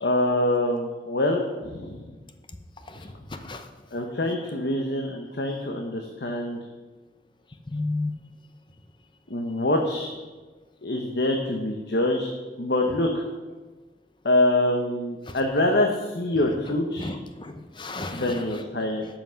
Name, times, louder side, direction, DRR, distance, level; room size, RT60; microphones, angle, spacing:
voice 1, 0.0-2.1 3.9-6.6 9.3-10.1 10.8-12.3 12.6-13.2 14.2-17.1 18.1-19.1, left 1 dB, 70° left, 2 dB, 1.0 m, -25 dB
voice 2, 7.7-8.1 17.0-18.2, left 2 dB, 25° left, 7 dB, 0.7 m, -32 dB
12.5 x 6.0 x 5.8 m, 1.3 s
head